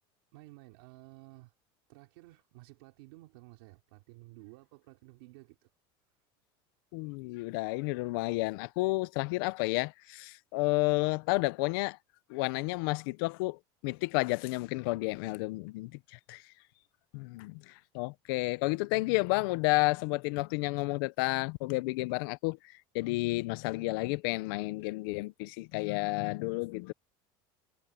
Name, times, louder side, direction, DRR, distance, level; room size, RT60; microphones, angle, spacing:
voice 1, 0.3-1.5 1.9-5.7, right 21 dB, 75° right, 3.1 m, -53 dB
voice 2, 6.9-12.0 12.3-16.4 17.1-26.9, left 24 dB, 65° left, 0.7 m, -31 dB
cardioid pair, 170°, 13 cm